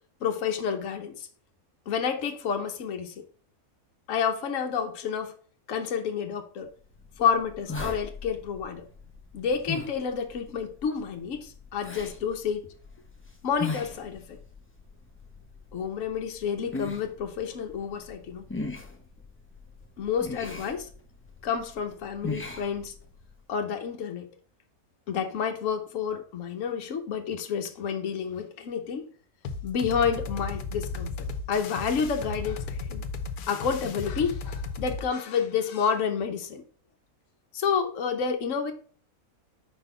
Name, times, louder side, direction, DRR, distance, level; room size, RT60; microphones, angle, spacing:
voice 1, 0.2-1.3 1.9-3.2 4.1-5.3 5.7-6.7 7.2-8.9 9.3-12.7 13.4-14.4 15.7-18.4 20.0-20.9 21.4-22.9 23.5-24.3 25.1-29.1 29.6-31.1 31.5-33.1 33.5-36.6 37.5-38.7, left 6 dB, 60° left, 1.2 m, -29 dB
sound 1, 6.8-23.4, left 3 dB, 15° left, 0.6 m, -40 dB
sound 2, 29.4-35.1, left 4 dB, 90° left, 1.2 m, -35 dB
5.2 x 4.0 x 5.5 m
omnidirectional pair, 1.6 m